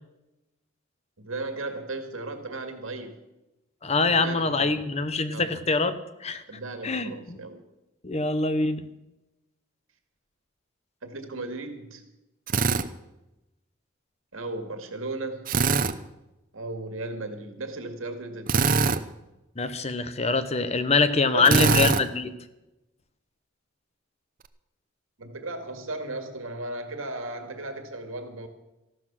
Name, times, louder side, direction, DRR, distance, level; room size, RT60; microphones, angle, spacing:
voice 1, 1.2-3.2 4.0-4.8 5.3-5.6 6.5-7.6 11.0-12.1 14.3-15.6 16.5-18.8 21.3-21.8 25.2-28.5, right 2 dB, 85° right, 7 dB, 2.1 m, -36 dB
voice 2, 3.8-6.4 6.8-7.4 8.0-8.8 19.6-22.3, left 3 dB, 30° left, 12 dB, 0.9 m, -24 dB
Drill, 12.5-12.9 15.5-15.9 18.5-19.0 21.5-22.0, right 4 dB, 45° right, 0.7 m, -22 dB
14.5 x 12.5 x 6.0 m, 0.97 s
head